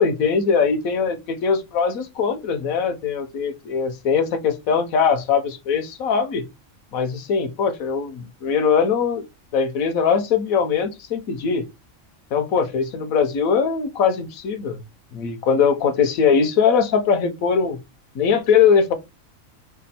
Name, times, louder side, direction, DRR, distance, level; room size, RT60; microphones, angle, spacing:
voice 1, 0.0-6.5 6.9-9.2 9.5-11.6 12.3-14.8 15.1-17.8 18.1-18.9, left 6 dB, 85° left, 1.2 m, -21 dB
5.1 x 2.3 x 4.1 m
omnidirectional pair, 1.4 m